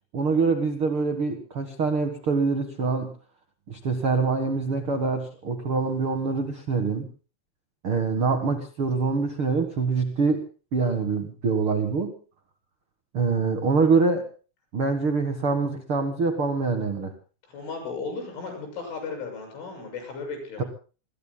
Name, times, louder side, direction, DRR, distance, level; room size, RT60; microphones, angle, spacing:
voice 1, 0.1-3.1 3.7-7.1 7.8-10.4 10.7-12.1 13.1-14.3 14.7-17.1 20.6-20.7, right 4 dB, 90° right, 6 dB, 1.2 m, -25 dB
voice 2, 17.4-20.7, left 4 dB, 85° left, 4 dB, 9.3 m, -35 dB
27.0 x 21.5 x 2.3 m, 0.36 s
omnidirectional pair, 5.4 m